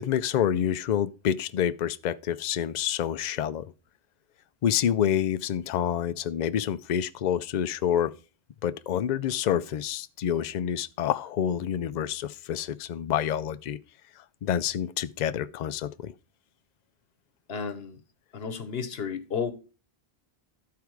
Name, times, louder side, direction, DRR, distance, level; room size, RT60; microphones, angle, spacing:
voice 1, 0.0-3.7 4.6-8.1 8.6-13.8 14.4-16.1, left 9 dB, 55° left, 0.5 m, -28 dB
voice 2, 17.5-18.0 18.3-19.5, left 6 dB, 75° left, 1.2 m, -32 dB
12.0 x 4.8 x 4.7 m
omnidirectional pair, 1.0 m